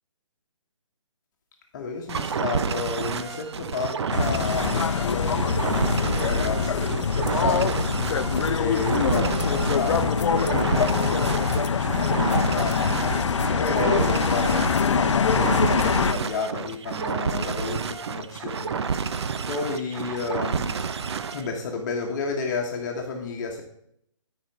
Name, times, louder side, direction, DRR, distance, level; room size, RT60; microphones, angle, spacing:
voice 1, 1.7-7.9 8.6-13.0 13.6-18.7 19.4-20.9 21.3-23.6, left 4 dB, 35° left, 1 dB, 1.3 m, -31 dB
sound 1, 2.1-21.5, right 6 dB, 55° right, 0.6 m, -30 dB
sound 2, 4.1-16.1, left 6 dB, 60° left, 0.6 m, -24 dB
12.5 x 5.2 x 4.6 m, 0.73 s
figure-of-eight pair, 140°, 17 cm